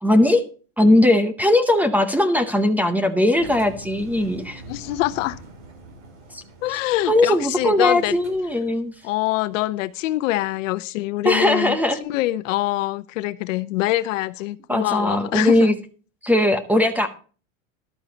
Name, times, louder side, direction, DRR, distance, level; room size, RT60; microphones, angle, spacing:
voice 1, 0.0-0.4 0.8-4.6 6.3-6.4 7.1-8.9 11.2-12.0 14.7-15.7 16.2-17.1, left 1 dB, 5° right, 0.7 m, -19 dB
Engine, 3.4-9.2, right 1 dB, 65° right, 6.3 m, -43 dB
voice 2, 4.7-5.4 6.6-8.2 9.0-15.8, left 16 dB, 65° left, 0.9 m, -24 dB
13.5 x 12.0 x 2.8 m
supercardioid pair, 155°, 42 cm